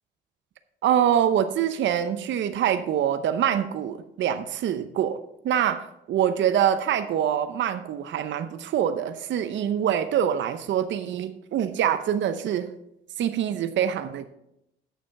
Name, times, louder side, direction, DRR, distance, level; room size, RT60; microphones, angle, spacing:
voice 1, 0.8-5.2 5.4-12.7 13.2-14.3, right 9 dB, 70° right, 10 dB, 0.7 m, -25 dB
9.2 x 6.8 x 5.8 m, 0.80 s
cardioid pair, 90°, 20 cm